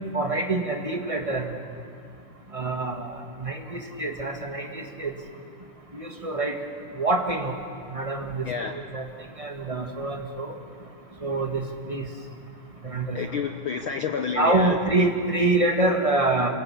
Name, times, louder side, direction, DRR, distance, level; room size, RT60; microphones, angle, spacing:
voice 1, 0.1-1.5 2.5-5.1 5.9-6.5 7.0-7.5 7.9-9.1 9.4-10.6 11.2-12.1 12.8-13.2 14.3-16.5, right 2 dB, 25° right, 3 dB, 0.7 m, -26 dB
voice 2, 8.4-8.8 13.1-15.1, left 6 dB, 90° left, 6 dB, 1.1 m, -30 dB
29.0 x 22.5 x 8.5 m, 2.4 s
omnidirectional pair, 3.7 m